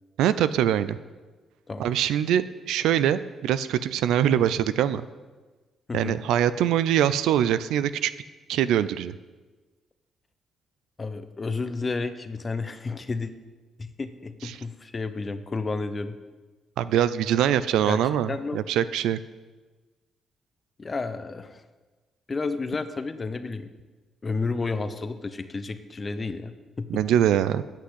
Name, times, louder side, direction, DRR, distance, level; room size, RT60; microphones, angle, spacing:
voice 1, 0.2-1.0 1.8-5.0 5.9-8.1 8.5-9.1 14.4-14.6 16.8-19.2 26.9-27.6, right 10 dB, 85° right, 15 dB, 0.4 m, -23 dB
voice 2, 11.0-13.3 13.8-16.2 17.8-18.0 18.3-18.6 20.8-21.6 22.3-23.7 24.2-27.0, left 3 dB, 30° left, 11 dB, 0.7 m, -31 dB
8.8 x 5.9 x 7.8 m, 1.3 s
cardioid pair, 90°, 0 cm